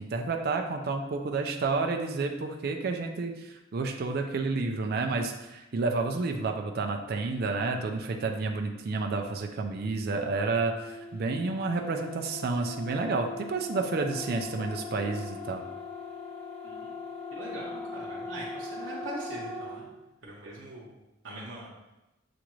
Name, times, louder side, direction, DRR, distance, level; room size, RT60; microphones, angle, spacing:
voice 1, 0.0-15.6, right 3 dB, 55° right, 3 dB, 0.4 m, -30 dB
sound 1, 10.8-19.8, left 3 dB, 5° left, 0.6 m, -40 dB
voice 2, 17.3-19.9 20.2-20.9 21.2-21.9, right 1 dB, 80° right, -6 dB, 0.9 m, -42 dB
6.9 x 2.5 x 3.1 m, 0.99 s
head